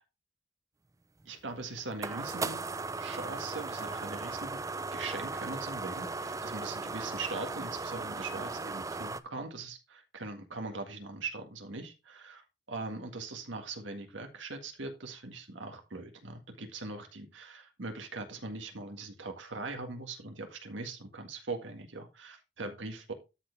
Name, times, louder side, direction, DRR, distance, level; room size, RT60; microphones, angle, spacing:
sound 1, 1.2-9.2, right 3 dB, 15° right, 0.4 m, -37 dB
voice 1, 1.3-2.7 3.0-23.1, right 3 dB, 85° right, 5 dB, 1.8 m, -41 dB
13.0 x 4.6 x 3.4 m, 0.27 s
head